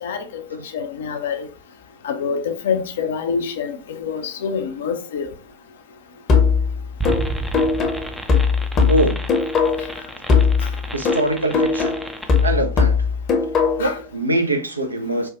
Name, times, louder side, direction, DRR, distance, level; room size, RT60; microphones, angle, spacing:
voice 1, 0.0-0.4 0.7-1.4 2.0-5.3 10.6-10.7 13.8-14.0, left 6 dB, 60° left, 0.5 m, -26 dB
sound 1, 6.3-10.0 10.3-14.0, left 5 dB, 30° left, 0.8 m, -19 dB
sound 2, 7.0-12.5, right 2 dB, ahead, 0.4 m, -31 dB
voice 2, 8.9-9.2 10.9-11.9 12.4-12.9 13.8-15.3, right 1 dB, 80° right, 0.5 m, -22 dB
4.4 x 2.3 x 2.4 m
figure-of-eight pair, 90°, 0 cm